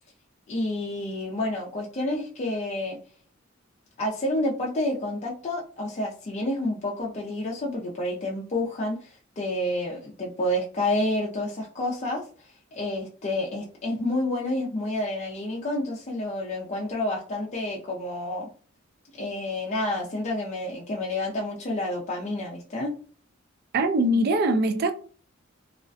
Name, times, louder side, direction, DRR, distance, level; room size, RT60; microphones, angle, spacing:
voice 1, 0.5-3.0 4.0-9.1 9.4-12.2 12.7-18.5 19.2-22.9, left 1 dB, 35° left, 0.4 m, -29 dB
voice 2, 23.7-24.9, right 1 dB, 50° right, 0.3 m, -22 dB
2.3 x 2.1 x 2.5 m
head